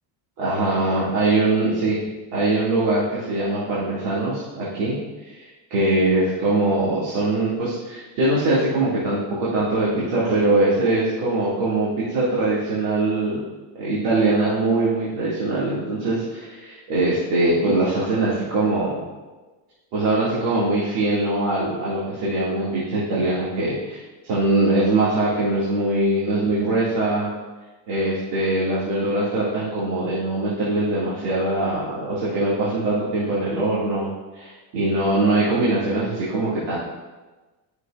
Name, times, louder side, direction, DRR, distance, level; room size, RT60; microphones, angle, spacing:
voice 1, 0.4-2.0 2.3-13.4 13.8-19.0 19.9-27.3 27.9-36.8, right 2 dB, 70° right, -7 dB, 2.3 m, -22 dB
11.5 x 6.4 x 2.4 m, 1.2 s
cardioid pair, 160°, 48 cm